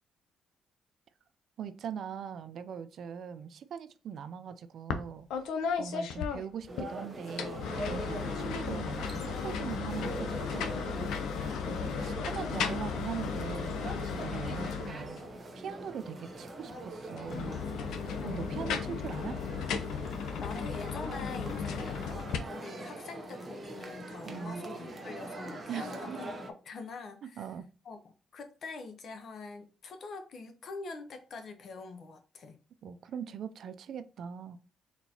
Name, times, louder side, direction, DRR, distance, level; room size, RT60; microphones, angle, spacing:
voice 1, 1.6-5.3 5.8-10.7 11.6-15.2 15.5-17.6 18.2-19.4 24.2-24.7 25.7-26.2 27.2-27.7 32.8-34.6, right 7 dB, 65° right, 0.5 m, -41 dB
sound 1, 4.9-5.1 5.3-6.9 7.3-15.3 17.1-22.4, left 6 dB, 85° left, 0.6 m, -35 dB
sound 2, 6.7-26.5, right 2 dB, 35° right, 0.8 m, -43 dB
voice 2, 11.4-11.8 18.3-18.6 20.1-20.2 20.4-22.1 22.5-26.3 26.6-27.5 27.8-32.6, left 4 dB, 55° left, 0.9 m, -44 dB
4.4 x 3.9 x 2.9 m
cardioid pair, 90°, 0 cm